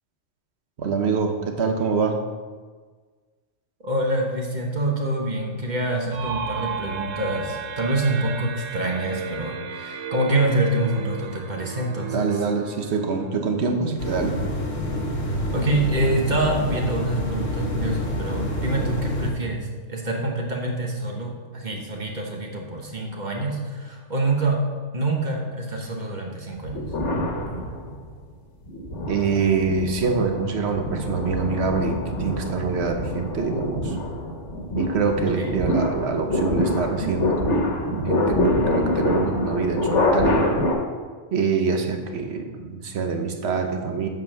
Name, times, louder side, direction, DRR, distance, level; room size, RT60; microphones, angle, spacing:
voice 1, 0.8-2.2 12.1-14.4 29.1-34.0 34.8-40.5 41.3-44.1, right 5 dB, 60° right, 5 dB, 1.2 m, -25 dB
voice 2, 3.8-12.3 15.2-24.7 24.9-26.8 35.4-35.5, right 1 dB, 40° right, 0 dB, 1.2 m, -26 dB
sound 1, 6.1-13.7, right 6 dB, 85° right, 1.0 m, -34 dB
sound 2, 14.0-19.3, equal, 90° left, 1.6 m, -27 dB
sound 3, 26.7-28.1 28.6-40.7, left 1 dB, 70° left, 1.6 m, -25 dB
8.3 x 5.1 x 6.1 m, 1.5 s
omnidirectional pair, 1.3 m